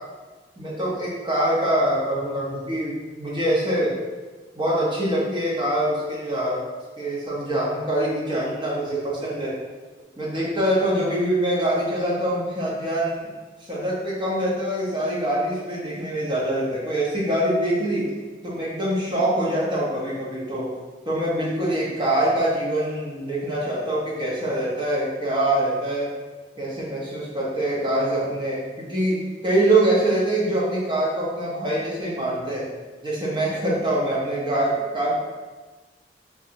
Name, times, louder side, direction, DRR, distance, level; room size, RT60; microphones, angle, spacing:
voice 1, 0.6-4.0 4.6-6.6 7.0-9.5 10.2-13.3 13.7-18.0 18.4-20.7 21.0-26.1 26.6-32.6 33.0-35.1, right 1 dB, 25° right, -7 dB, 0.8 m, -24 dB
2.6 x 2.4 x 3.9 m, 1.3 s
head